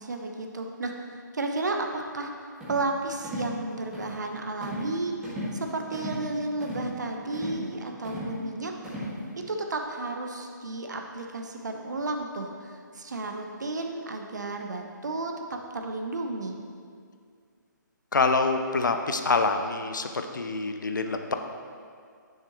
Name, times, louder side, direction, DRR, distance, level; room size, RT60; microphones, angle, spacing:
voice 1, 0.0-2.3 2.7-5.1 5.5-8.7 9.4-16.6, right 2 dB, 60° right, 3 dB, 0.9 m, -33 dB
sound 1, 2.6-2.9 3.2-3.5 3.9-4.2 4.6-4.9 5.2-5.6 5.9-6.2 6.6-6.9 7.3-7.7 8.0-8.4 8.8-9.2, equal, 5° right, 1.6 m, -35 dB
voice 2, 18.1-21.3, left 3 dB, 70° left, 6 dB, 0.7 m, -26 dB
10.5 x 6.6 x 3.0 m, 2.2 s
figure-of-eight pair, 140°, 11 cm